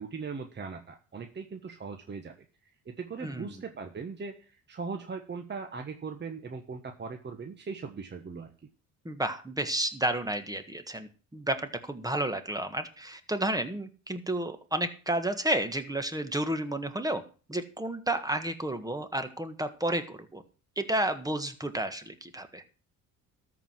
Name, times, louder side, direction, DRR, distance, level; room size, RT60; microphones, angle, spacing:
voice 1, 0.0-2.3 3.0-8.5, right 5 dB, 30° right, 4 dB, 1.3 m, -39 dB
voice 2, 3.2-3.6 9.0-17.2 17.5-20.4 20.8-22.6, right 1 dB, 10° right, 9 dB, 1.6 m, -31 dB
13.0 x 4.9 x 7.5 m, 0.37 s
cardioid pair, 90°, 34 cm